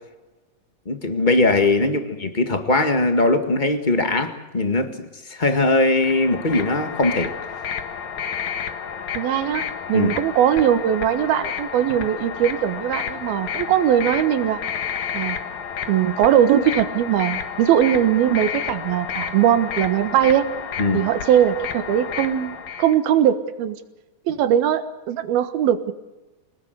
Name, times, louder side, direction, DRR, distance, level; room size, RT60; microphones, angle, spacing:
voice 1, 0.8-4.9 5.3-7.3 9.9-10.1 20.8-21.0, left 2 dB, 30° left, 7 dB, 0.8 m, -20 dB
sound 1, 5.9-23.0, left 7 dB, 60° left, 2.8 m, -31 dB
voice 2, 9.1-14.6 15.1-15.4 15.9-20.5 20.9-23.8 24.3-25.9, right 10 dB, 90° right, 10 dB, 3.3 m, -20 dB
25.5 x 20.0 x 8.1 m, 1.1 s
omnidirectional pair, 4.2 m